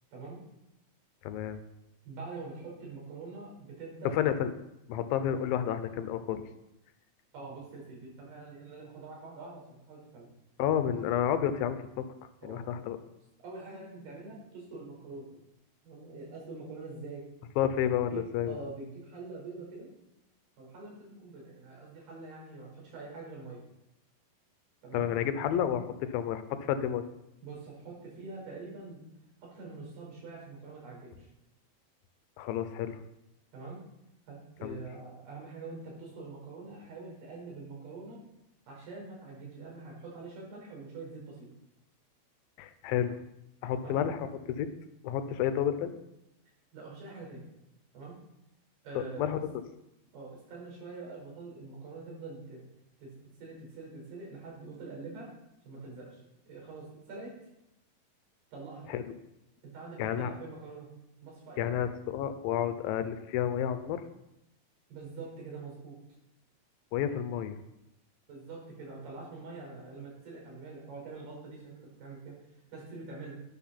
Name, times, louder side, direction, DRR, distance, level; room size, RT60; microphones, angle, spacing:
voice 1, 0.1-0.4 2.1-4.1 7.3-10.3 12.4-12.6 13.4-15.3 15.8-17.2 18.1-19.9 20.6-23.6 24.8-25.1 27.4-29.0 29.4-31.3 33.5-33.8 34.3-38.2 38.7-41.5 43.7-44.0 46.7-47.4 47.9-48.1 48.8-49.3 50.1-52.6 53.0-53.1 53.4-55.3 55.6-57.4 58.5-59.0 59.6-60.9 61.2-61.8 64.9-66.0 68.3-72.4 72.7-73.4, right 3 dB, 80° right, -3 dB, 6.5 m, -45 dB
voice 2, 1.2-1.6 4.1-4.5 4.9-6.4 10.6-12.1 12.4-13.0 17.6-18.6 24.9-27.1 32.4-33.0 34.6-34.8 42.6-43.2 43.6-44.7 45.0-46.0 49.0-49.4 58.9-59.0 60.0-60.3 61.6-64.0 66.9-67.6, left 9 dB, 75° left, 10 dB, 2.4 m, -30 dB
12.0 x 11.0 x 4.2 m, 0.87 s
omnidirectional pair, 4.5 m